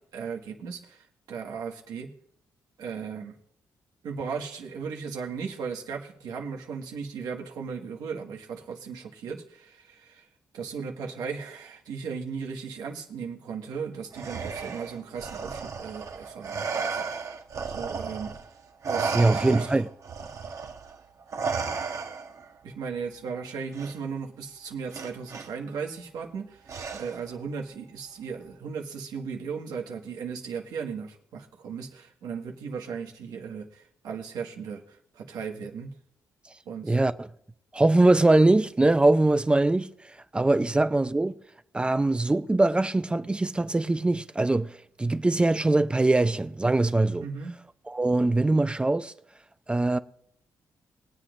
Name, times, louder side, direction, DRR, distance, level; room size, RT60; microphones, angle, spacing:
voice 1, 0.1-2.1 2.8-3.3 4.0-10.2 10.5-17.1 17.7-18.3 18.9-19.7 22.6-35.9 36.6-37.0 47.2-47.5, right 6 dB, 90° right, 1.8 m, -36 dB
Respiratory sounds, 14.1-18.5 18.8-22.5 23.7-23.9 24.9-25.5 26.7-27.3, right 5 dB, 55° right, 1.2 m, -33 dB
voice 2, 19.1-19.9 36.8-37.3 37.7-41.4 41.7-47.3 47.9-49.1 49.7-50.0, right 2 dB, 15° right, 0.5 m, -22 dB
23.0 x 8.2 x 2.6 m
cardioid pair, 95°, 7 cm